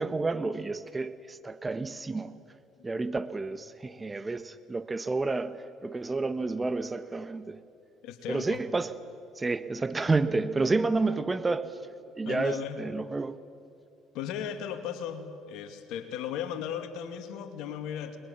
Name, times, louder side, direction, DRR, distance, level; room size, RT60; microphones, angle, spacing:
voice 1, 0.0-2.4 2.8-7.6 8.3-9.0 9.4-11.8 12.2-13.4, right 3 dB, 20° right, 1.1 m, -30 dB
voice 2, 8.0-8.6 12.2-12.8 14.1-18.2, left 9 dB, 70° left, 2.4 m, -36 dB
30.0 x 22.0 x 7.2 m
hypercardioid pair, 65°, 0 cm